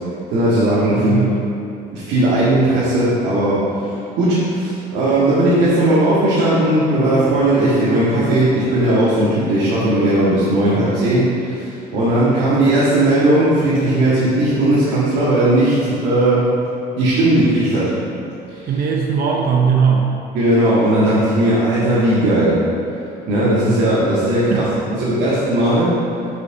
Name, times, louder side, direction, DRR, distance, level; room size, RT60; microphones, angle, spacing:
voice 1, 0.3-1.2 1.9-3.6 4.1-16.5 16.9-17.9 18.5-18.7 20.3-22.6 23.3-24.7 25.0-26.0, right 1 dB, 90° right, -10 dB, 1.9 m, -17 dB
voice 2, 0.9-1.3 18.7-20.1 24.5-25.2, right 6 dB, 65° right, 1 dB, 0.7 m, -19 dB
6.4 x 5.1 x 6.0 m, 2.7 s
cardioid pair, 110°, 17 cm